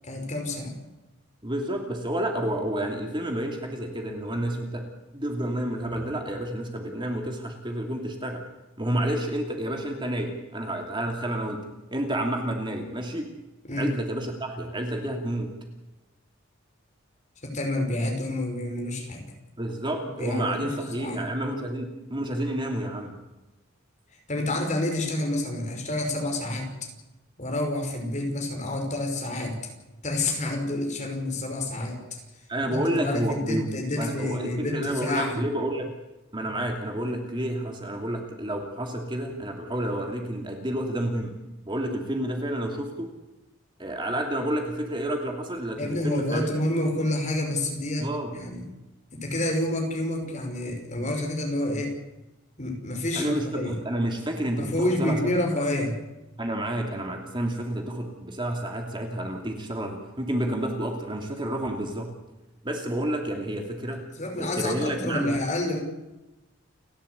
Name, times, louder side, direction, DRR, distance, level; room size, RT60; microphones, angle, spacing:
voice 1, 0.0-0.8 13.7-14.0 17.4-19.2 20.1-21.3 24.3-26.9 27.4-29.6 30.0-32.2 32.6-35.4 45.8-48.7 49.1-52.0 52.6-53.8 54.6-56.0 64.2-65.8, left 1 dB, 35° left, 2 dB, 5.5 m, -28 dB
voice 2, 1.4-4.8 5.1-8.4 8.8-11.6 11.9-13.3 13.7-15.5 19.6-23.2 32.5-33.7 34.0-35.9 36.3-41.3 41.7-43.1 43.8-46.5 48.0-48.4 53.1-55.2 56.4-62.1 62.6-64.0 64.4-65.4, right 1 dB, 25° right, 3 dB, 2.8 m, -30 dB
29.5 x 13.0 x 8.4 m, 1.0 s
head